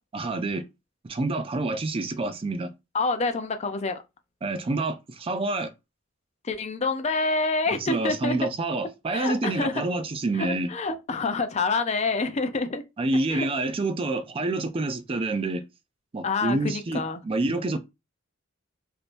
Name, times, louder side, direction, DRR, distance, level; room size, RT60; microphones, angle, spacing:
voice 1, 0.1-0.7 1.0-2.7 4.4-5.7 7.8-10.7 13.0-15.6 16.1-17.8, right 2 dB, 30° right, 0.4 m, -27 dB
voice 2, 2.9-4.0 6.4-8.4 9.1-9.8 10.3-12.8 13.3-13.5 16.2-17.2, left 3 dB, 35° left, 0.5 m, -27 dB
3.5 x 2.6 x 2.5 m
head